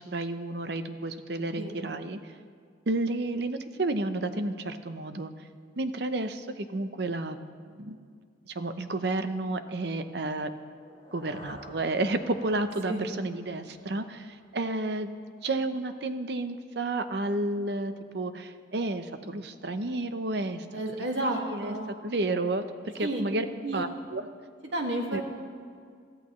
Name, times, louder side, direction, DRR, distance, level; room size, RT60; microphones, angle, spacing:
voice 1, 0.0-2.3 2.9-5.3 5.8-7.4 7.7-8.2 8.5-10.5 11.1-15.1 15.4-20.8 21.2-21.7 22.0-23.5 23.7-24.3 25.1-25.2, right 2 dB, 60° right, 9 dB, 0.7 m, -31 dB
sound 1, 10.7-14.6, left 1 dB, 25° left, 2.3 m, -51 dB
voice 2, 20.7-21.9 23.0-23.2 23.6-23.8 24.7-25.2, right 1 dB, 80° right, 1 dB, 2.0 m, -31 dB
22.5 x 15.0 x 3.1 m, 2.1 s
head